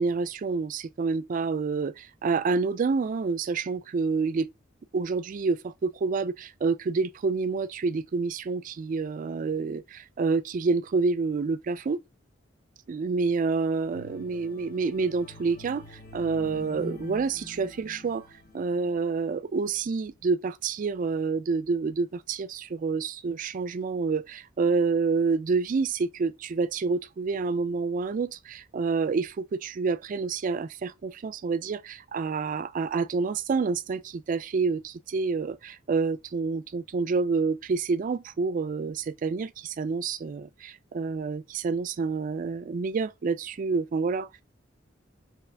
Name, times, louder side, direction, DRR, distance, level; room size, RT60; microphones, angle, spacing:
voice 1, 0.0-4.5 4.9-12.0 12.9-18.2 18.5-44.4, right 4 dB, 45° right, 0.3 m, -28 dB
sound 1, 13.9-19.2 19.7-19.9, left 2 dB, 50° left, 0.9 m, -45 dB
3.5 x 2.9 x 3.3 m
head